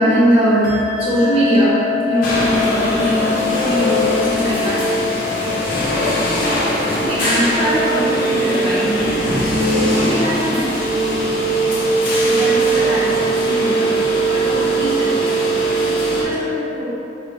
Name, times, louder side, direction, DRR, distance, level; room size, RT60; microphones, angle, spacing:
voice 1, 0.0-5.2 6.9-10.8 12.2-13.9 14.3-15.5 15.8-16.9, equal, 30° right, -11 dB, 1.2 m, -21 dB
sound 1, 0.6-8.8, left 10 dB, 60° right, 0.7 m, -27 dB
sound 2, 2.2-16.2, right 1 dB, 50° left, 0.9 m, -19 dB
4.5 x 2.6 x 3.3 m, 2.8 s
head